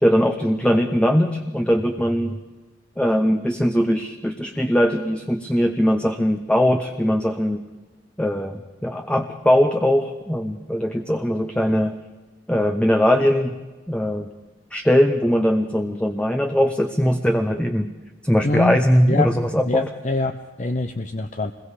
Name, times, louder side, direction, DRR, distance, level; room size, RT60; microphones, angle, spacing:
voice 1, 0.0-2.4 3.0-7.6 8.2-11.9 12.5-13.6 13.9-14.3 14.7-17.9 18.2-19.9, equal, 5° left, 5 dB, 0.9 m, -20 dB
voice 2, 18.4-19.3 19.7-21.5, left 2 dB, 40° left, 8 dB, 0.8 m, -25 dB
27.0 x 22.0 x 5.0 m, 1.2 s
head